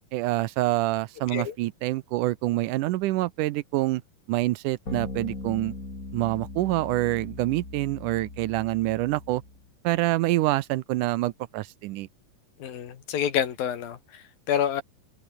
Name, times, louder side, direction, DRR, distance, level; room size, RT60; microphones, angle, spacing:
voice 1, 0.1-4.0 4.3-5.7 6.1-9.4 9.8-12.1, right 17 dB, 80° right, 2.0 m, -26 dB
sound 1, 4.9-9.6, left 2 dB, 25° left, 4.8 m, -39 dB
voice 2, 12.6-14.8, left 9 dB, 85° left, 4.2 m, -28 dB
omnidirectional pair, 4.0 m